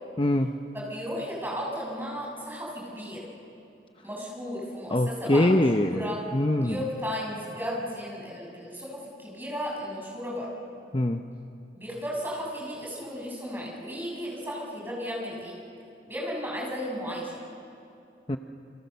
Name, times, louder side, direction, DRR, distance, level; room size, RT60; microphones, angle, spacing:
voice 1, 0.2-0.5 4.9-6.1 6.3-6.8 10.9-11.2 18.3-18.4, left 1 dB, 30° left, 6 dB, 0.7 m, -23 dB
voice 2, 0.7-3.2 4.0-6.2 6.6-10.5 11.8-15.5 16.1-17.3, equal, 10° right, -3 dB, 7.0 m, -34 dB
30.0 x 26.5 x 6.8 m, 2.7 s
head